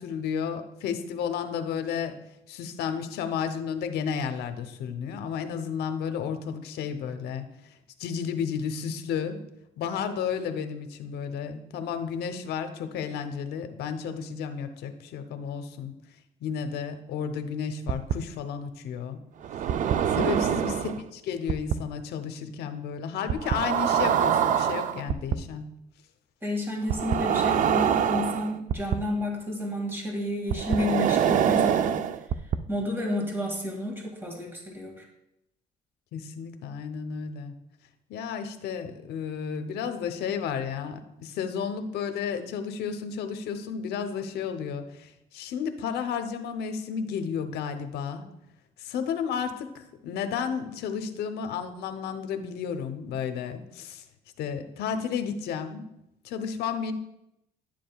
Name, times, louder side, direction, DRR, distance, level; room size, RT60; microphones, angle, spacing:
voice 1, 0.0-2.2 2.5-9.4 9.8-15.9 16.4-19.2 20.1-25.7 36.1-37.5 38.1-48.2 48.8-54.0 54.4-55.9 56.2-56.9, left 7 dB, 75° left, 8 dB, 0.8 m, -32 dB
sound 1, 17.9-18.1 19.4-21.0 21.5-21.7 23.3-25.3 26.9-29.0 30.5-32.6, right 9 dB, 50° right, 0.4 m, -24 dB
voice 2, 26.4-32.1 32.7-35.1, left 1 dB, 15° right, 0 dB, 2.1 m, -31 dB
10.5 x 7.5 x 2.3 m, 0.85 s
cardioid pair, 110°, 17 cm